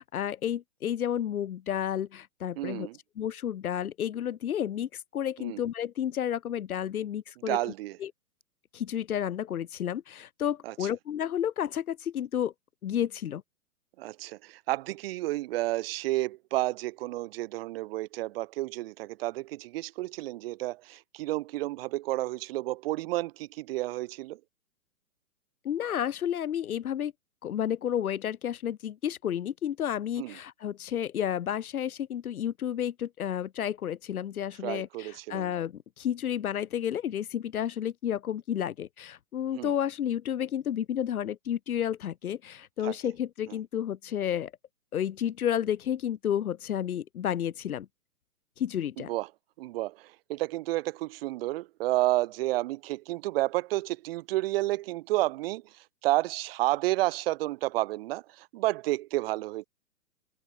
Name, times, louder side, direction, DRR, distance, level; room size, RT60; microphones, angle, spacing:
voice 1, 0.0-2.9 3.2-7.7 8.0-8.1 8.7-12.5 12.8-13.4 25.6-27.1 27.4-44.5 44.9-47.9 48.6-49.1, left 10 dB, 70° left, 1.8 m, -31 dB
voice 2, 2.6-3.0 5.4-5.6 7.5-8.0 10.6-10.7 14.0-24.4 30.2-30.3 34.6-35.5 39.5-39.7 42.8-42.9 49.1-49.3 49.6-49.9 50.3-55.6 56.0-59.6, right 17 dB, 40° right, 3.4 m, -31 dB
hypercardioid pair, 155°, 45 cm